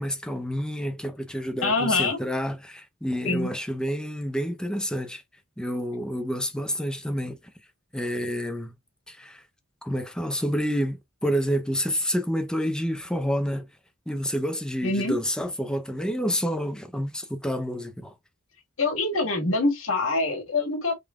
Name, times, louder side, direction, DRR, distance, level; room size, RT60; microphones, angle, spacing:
voice 1, 0.0-5.2 5.6-7.4 7.9-8.7 9.1-9.4 9.8-13.7 14.1-18.1, equal, 5° left, 0.7 m, -29 dB
voice 2, 1.6-2.2 3.3-3.5 14.8-15.2 18.8-21.0, left 3 dB, 75° left, 2.0 m, -24 dB
4.8 x 3.8 x 2.4 m
head